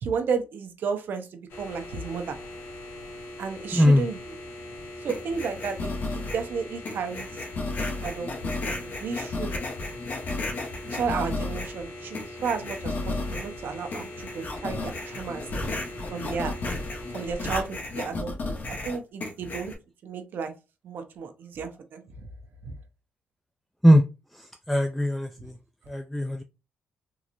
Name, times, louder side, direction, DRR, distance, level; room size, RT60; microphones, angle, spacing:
voice 1, 0.0-2.4 3.4-4.2 5.0-7.3 8.0-9.5 10.9-15.4 16.1-16.5 17.1-19.7 20.0-20.5 20.8-22.0 22.6-22.7, right 5 dB, 65° right, 7 dB, 0.8 m, -33 dB
sound 1, 1.5-17.7, left 1 dB, 80° left, 1.4 m, -41 dB
voice 2, 3.7-4.1 23.8-24.0 24.3-25.5 25.9-26.4, equal, ahead, 6 dB, 0.3 m, -20 dB
sound 2, 5.1-6.5 6.9-11.8 12.1-13.6 13.9-19.7, left 2 dB, 50° left, 1.1 m, -33 dB
3.8 x 3.0 x 2.6 m, 0.29 s
cardioid pair, 120°, 4 cm